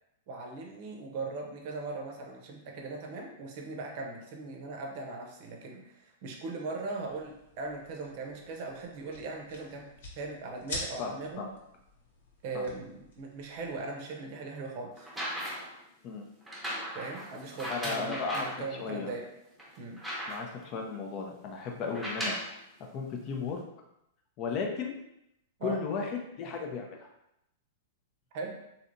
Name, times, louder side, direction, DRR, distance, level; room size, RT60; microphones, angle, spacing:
voice 1, 0.3-9.9 10.2-11.4 12.4-15.1 16.9-19.2 19.8-20.0 25.6-25.8 28.3-28.6, right 3 dB, 50° right, 2 dB, 0.7 m, -39 dB
sound 1, 7.1-13.8, left 2 dB, 75° left, 1.0 m, -46 dB
voice 2, 11.0-11.5 12.5-12.7 16.0-16.2 17.7-19.1 20.3-22.3 22.9-23.6 24.4-24.9 25.6-27.1, left 5 dB, 40° left, 2 dB, 0.5 m, -35 dB
sound 2, 15.0-15.8 16.5-18.6 19.2-19.3 19.6-20.7 21.8-22.5 23.5-23.6, equal, 5° right, 0.8 m, -37 dB
3.2 x 2.7 x 2.6 m, 0.81 s
hypercardioid pair, 140°, 0 cm